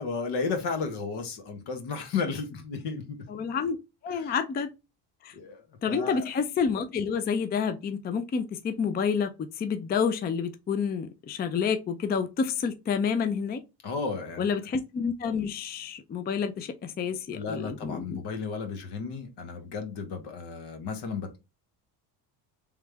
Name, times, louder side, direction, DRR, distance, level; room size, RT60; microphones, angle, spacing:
voice 1, 0.0-3.2 4.1-4.3 5.3-5.6 5.9-6.3 13.8-14.5 17.3-21.4, left 4 dB, 70° left, 1.4 m, -33 dB
voice 2, 3.3-3.8 4.0-4.7 5.2-5.3 5.8-9.3 9.6-13.6 14.4-18.2, left 6 dB, 25° left, 0.4 m, -29 dB
3.5 x 3.1 x 3.3 m
cardioid pair, 130°, 42 cm